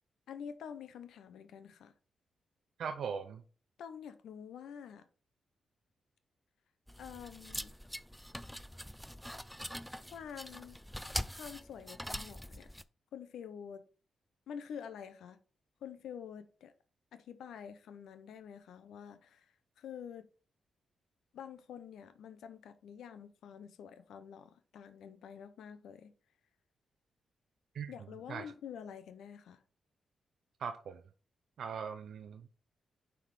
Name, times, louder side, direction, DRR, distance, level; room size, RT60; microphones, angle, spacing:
voice 1, 0.3-1.9 3.8-5.1 7.0-7.7 10.0-10.8 11.3-12.7 13.1-13.8 14.5-15.4 15.8-16.7 17.1-20.3 21.3-26.1 27.9-29.6, left 8 dB, 85° left, 0.6 m, -48 dB
voice 2, 2.8-3.4 27.7-27.9 28.3-28.4 30.6-31.0 31.6-32.5, right 6 dB, 75° right, 0.4 m, -39 dB
sound 1, 6.9-12.8, equal, ahead, 0.4 m, -43 dB
5.7 x 3.5 x 4.7 m
supercardioid pair, 55°, 0 cm